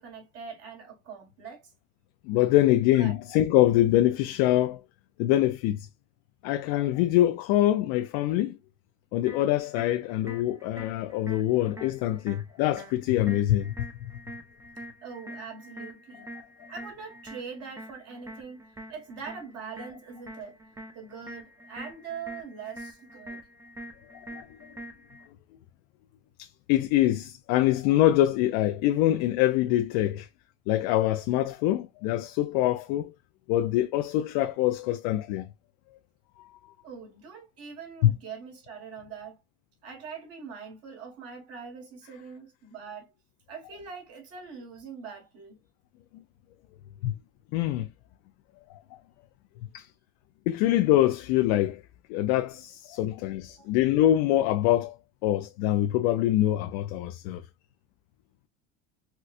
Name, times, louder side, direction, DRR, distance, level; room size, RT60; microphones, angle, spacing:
voice 1, 0.0-1.7 2.9-3.2 15.0-16.2 16.7-18.6 18.9-20.6 20.9-23.4 36.8-39.4 39.8-43.1 43.5-45.6 53.5-53.7, right 6 dB, 50° right, 1.5 m, -42 dB
voice 2, 2.3-4.8 5.2-5.9 6.4-8.6 9.1-13.7 14.0-14.1 24.1-24.4 26.4-30.3 30.7-33.1 33.5-35.5 38.0-38.1 47.0-47.1 47.5-47.9 48.7-48.8 49.7-49.9 50.5-51.8 52.1-54.9 55.2-57.4, left 14 dB, 70° left, 0.5 m, -24 dB
sound 1, 9.3-25.3, right 1 dB, 10° right, 0.7 m, -45 dB
4.3 x 2.2 x 2.4 m
supercardioid pair, 125°, 31 cm